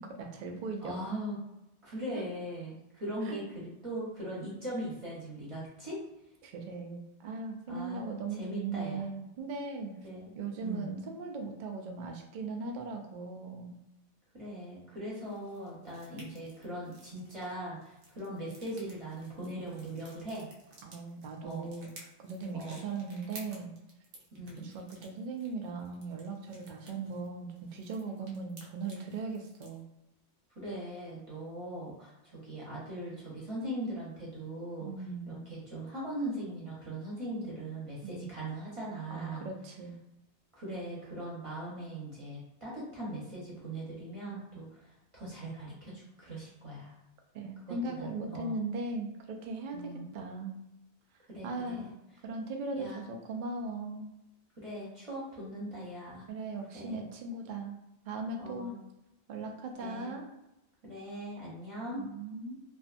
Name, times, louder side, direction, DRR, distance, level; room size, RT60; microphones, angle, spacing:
voice 1, 0.0-1.0 2.1-2.2 3.2-3.4 6.4-9.9 10.3-13.8 20.8-23.7 24.6-29.8 34.8-35.4 38.0-38.3 39.1-40.0 47.3-50.6 51.4-51.9 52.2-54.1 56.3-57.7 58.1-58.7 59.3-60.3 62.0-62.6, right 3 dB, 60° right, 2 dB, 0.5 m, -39 dB
voice 2, 0.8-1.4 1.8-6.0 7.7-8.1 8.4-9.1 10.0-10.3 10.6-10.9 14.3-20.4 21.4-21.7 22.5-22.8 24.3-24.7 30.6-32.1 32.4-34.9 35.3-39.5 40.6-44.8 45.1-46.9 47.7-48.6 49.7-50.1 51.3-51.9 52.8-53.0 54.6-56.3 56.7-57.0 58.4-58.7 59.8-60.1 60.8-62.0, right 1 dB, 30° right, -7 dB, 0.8 m, -40 dB
sound 1, 15.2-29.8, right 1 dB, 80° right, 1.0 m, -55 dB
2.5 x 2.3 x 2.5 m, 0.90 s
omnidirectional pair, 1.2 m